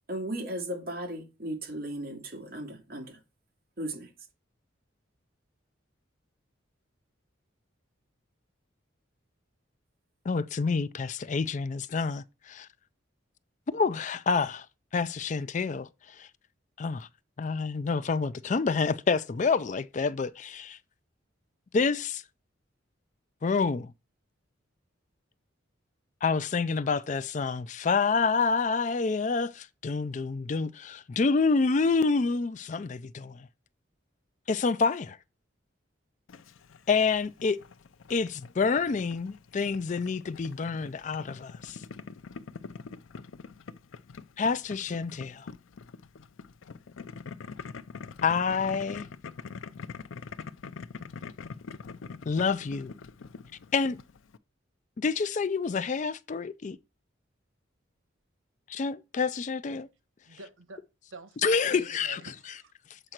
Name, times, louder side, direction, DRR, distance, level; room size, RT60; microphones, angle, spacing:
voice 1, 0.1-3.2 3.8-4.1, right 1 dB, 50° right, 2.2 m, -36 dB
voice 2, 10.3-12.7 13.7-14.7 14.9-16.3 16.8-17.1 17.4-20.8 21.7-22.2 23.4-23.9 26.2-33.5 34.5-35.2 36.9-37.6 38.1-41.8 44.4-45.5 48.2-49.1 52.3-52.9 53.7-54.0 55.0-56.8 58.7-59.9 61.4-62.2 62.9-63.0, left 4 dB, 40° left, 0.4 m, -28 dB
Boiling, 36.3-54.4, left 5 dB, 85° left, 0.5 m, -44 dB
voice 3, 60.3-60.8 61.1-62.7, right 3 dB, 90° right, 1.4 m, -47 dB
7.8 x 4.9 x 4.4 m
head